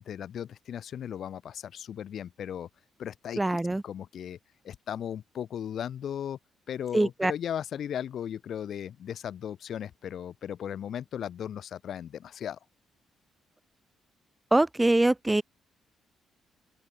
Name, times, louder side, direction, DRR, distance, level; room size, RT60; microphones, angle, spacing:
voice 1, 0.0-2.7 3.0-3.4 3.8-4.4 4.6-6.4 6.7-12.6, left 9 dB, 65° left, 1.6 m, -36 dB
voice 2, 3.4-3.8 6.9-7.3 14.5-15.4, right 2 dB, 10° right, 0.3 m, -23 dB
open air
cardioid pair, 90°, 0 cm